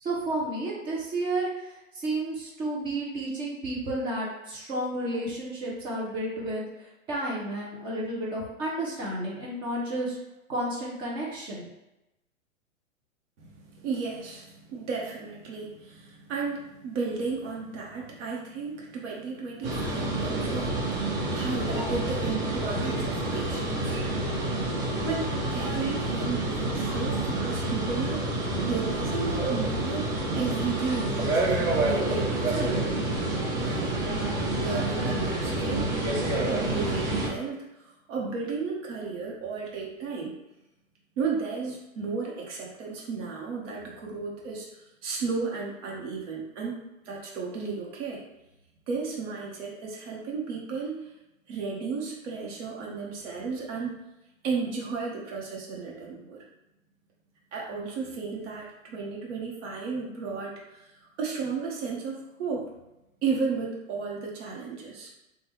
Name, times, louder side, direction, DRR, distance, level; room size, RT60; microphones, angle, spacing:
voice 1, 0.0-6.6 7.1-10.2 10.5-11.7, right 1 dB, 15° right, -4 dB, 0.3 m, -31 dB
voice 2, 13.4-30.1 30.3-32.8 33.6-33.9 34.6-35.9 36.5-40.3 41.2-46.8 47.0-48.2 48.9-51.1 51.5-54.0 54.4-56.4 57.5-62.7 63.2-65.1, right 4 dB, 60° right, -3 dB, 0.9 m, -34 dB
sound 1, 19.6-37.3, right 2 dB, 40° right, 1.2 m, -28 dB
3.2 x 2.2 x 3.0 m, 0.93 s
hypercardioid pair, 120°, 41 cm